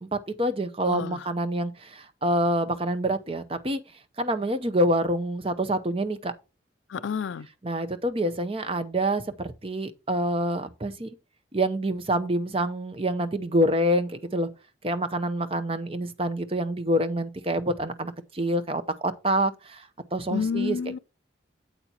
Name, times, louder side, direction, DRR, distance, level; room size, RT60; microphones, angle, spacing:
voice 1, 0.0-3.8 4.2-6.3 7.6-11.1 11.5-14.5 14.8-20.9, right 1 dB, 30° right, 0.7 m, -27 dB
voice 2, 0.8-1.3 6.9-7.5 20.3-21.0, left 6 dB, 80° left, 0.4 m, -29 dB
8.6 x 8.1 x 2.9 m
head